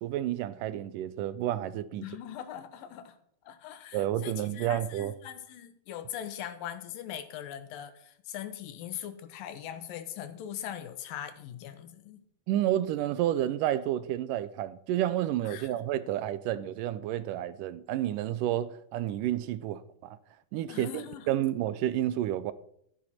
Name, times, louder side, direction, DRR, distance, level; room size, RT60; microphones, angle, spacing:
voice 1, 0.0-2.0 3.9-5.1 12.5-20.2 20.5-22.5, right 12 dB, 80° right, 2.0 m, -30 dB
voice 2, 2.0-3.2 3.4-12.2 15.4-15.9 20.7-21.3, left 10 dB, 80° left, 2.6 m, -41 dB
12.5 x 10.5 x 4.3 m
omnidirectional pair, 4.1 m